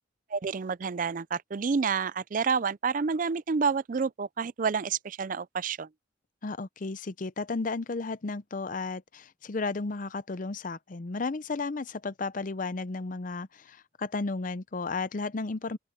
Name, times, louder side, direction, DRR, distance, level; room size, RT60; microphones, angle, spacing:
voice 1, 0.3-5.9, right 5 dB, 45° right, 0.4 m, -29 dB
voice 2, 6.4-15.8, left 3 dB, 45° left, 0.6 m, -33 dB
open air
head